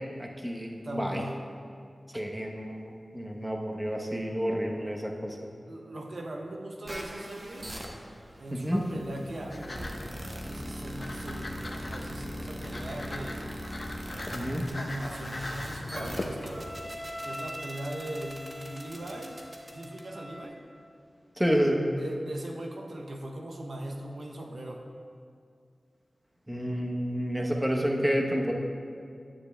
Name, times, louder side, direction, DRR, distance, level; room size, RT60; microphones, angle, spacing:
voice 1, 0.2-1.2 2.1-5.4 8.5-8.8 14.3-14.6 21.4-21.9 26.5-28.5, equal, 10° right, 0 dB, 0.9 m, -29 dB
voice 2, 0.8-1.4 5.7-7.7 8.4-10.0 10.3-13.5 14.7-16.8 17.2-20.6 22.0-24.8, right 1 dB, 70° right, 2 dB, 0.6 m, -39 dB
sound 1, 6.9-20.4, equal, 40° right, 1.0 m, -41 dB
sound 2, 8.5-16.9, left 1 dB, 40° left, 0.7 m, -41 dB
9.9 x 9.3 x 2.2 m, 2.3 s
wide cardioid pair, 60°, 0 cm